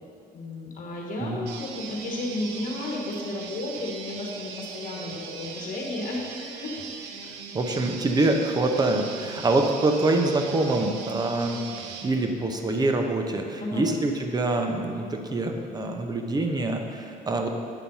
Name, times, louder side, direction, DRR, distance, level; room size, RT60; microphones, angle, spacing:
voice 1, 0.3-7.2 13.6-13.8, left 2 dB, 50° left, -1 dB, 1.3 m, -33 dB
sound 1, 1.5-12.1, right 5 dB, 90° right, 0.6 m, -40 dB
voice 2, 7.5-11.6 12.0-17.5, right 2 dB, 25° right, 4 dB, 0.8 m, -25 dB
9.1 x 4.2 x 5.5 m, 2.3 s
cardioid pair, 110°, 17 cm